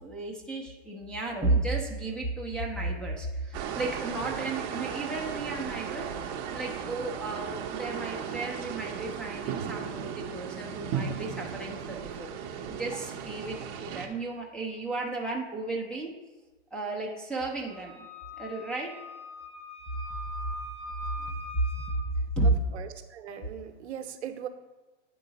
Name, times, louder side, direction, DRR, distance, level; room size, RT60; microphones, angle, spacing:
voice 1, 0.0-16.1 16.7-18.0 18.4-18.9 21.5-21.7 22.4-22.5, right 2 dB, ahead, -4 dB, 0.6 m, -33 dB
sound 1, 3.5-14.1, right 7 dB, 35° right, 0.7 m, -36 dB
Wind instrument woodwind instrument, 17.7-22.0, equal, 30° left, 2.5 m, -41 dB
voice 2, 22.4-24.5, right 9 dB, 65° right, 7 dB, 0.8 m, -39 dB
9.4 x 3.8 x 4.0 m, 1.1 s
hypercardioid pair, 135°, 36 cm